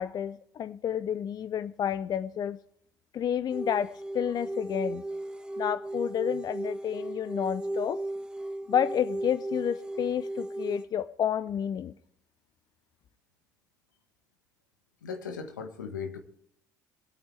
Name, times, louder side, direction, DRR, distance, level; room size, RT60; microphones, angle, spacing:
voice 1, 0.0-2.6 3.1-5.0 5.6-8.0 8.7-11.9, left 9 dB, 45° left, 0.6 m, -30 dB
sound 1, 3.5-10.8, right 1 dB, 10° right, 1.4 m, -35 dB
voice 2, 15.0-16.2, left 6 dB, 85° left, 1.5 m, -37 dB
23.0 x 8.8 x 3.3 m
hypercardioid pair, 60°, 10 cm